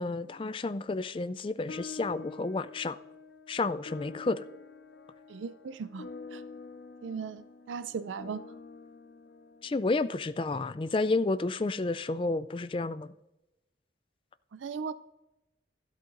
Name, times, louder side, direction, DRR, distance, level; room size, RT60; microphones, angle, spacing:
voice 1, 0.0-3.0 3.5-4.4 9.6-13.1, left 3 dB, 25° left, 0.3 m, -31 dB
sound 1, 1.7-10.4, left 4 dB, 65° left, 0.7 m, -47 dB
voice 2, 5.3-6.4 7.0-8.4 14.5-14.9, right 5 dB, 85° right, 0.4 m, -38 dB
13.5 x 12.0 x 2.6 m
head